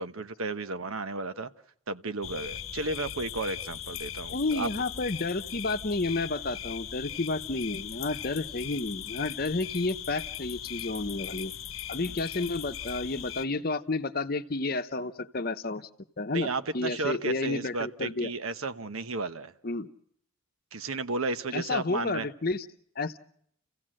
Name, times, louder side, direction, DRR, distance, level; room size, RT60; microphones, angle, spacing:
voice 1, 0.0-1.5 1.9-4.7 16.3-19.5 20.7-22.3, right 3 dB, 85° right, 11 dB, 1.0 m, -33 dB
sound 1, 2.2-13.4, left 10 dB, 75° left, 0.9 m, -39 dB
voice 2, 4.3-11.5 11.9-15.9 16.2-16.5 16.7-18.3 19.6-19.9 21.5-22.7 23.0-23.2, left 3 dB, 45° left, 11 dB, 0.8 m, -31 dB
30.0 x 15.5 x 7.7 m, 0.71 s
head